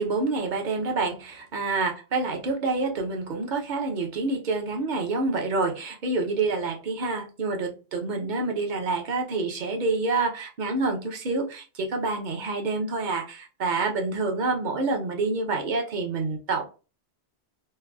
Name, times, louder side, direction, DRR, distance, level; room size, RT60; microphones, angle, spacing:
voice 1, 0.0-16.7, right 3 dB, 50° right, 3 dB, 0.7 m, -27 dB
3.2 x 2.2 x 2.2 m, 0.33 s
omnidirectional pair, 1.2 m